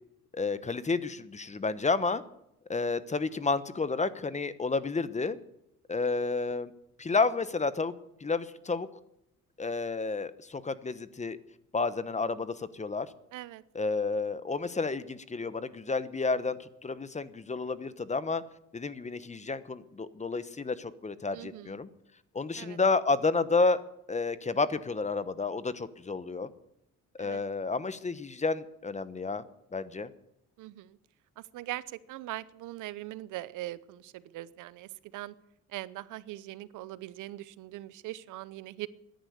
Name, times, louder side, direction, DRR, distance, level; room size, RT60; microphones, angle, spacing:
voice 1, 0.3-2.2 2.7-5.4 5.9-6.7 7.0-7.9 8.2-8.9 9.6-11.4 11.7-13.1 13.7-18.4 18.7-21.9 22.3-23.8 24.1-26.5 27.2-29.4 29.7-30.1, left 4 dB, 25° left, 15 dB, 1.1 m, -30 dB
voice 2, 13.3-13.6 21.3-21.8 22.6-22.8 27.2-27.4 30.6-31.0 31.4-35.3 35.7-38.9, right 16 dB, 90° right, 18 dB, 0.8 m, -41 dB
13.5 x 10.5 x 8.1 m, 0.81 s
cardioid pair, 90°, 30 cm